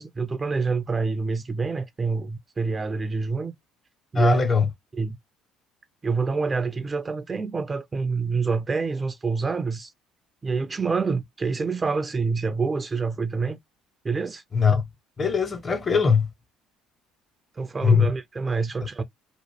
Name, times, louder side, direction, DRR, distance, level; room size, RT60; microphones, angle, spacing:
voice 1, 0.0-3.5 4.1-4.4 4.9-5.2 6.0-9.9 10.4-13.6 14.0-14.4 17.6-19.0, right 4 dB, 25° right, 0.4 m, -27 dB
voice 2, 4.2-4.7 14.5-14.8 15.2-16.3 17.8-18.1, left 5 dB, 30° left, 0.7 m, -20 dB
2.9 x 2.1 x 2.8 m
figure-of-eight pair, 55°, 0 cm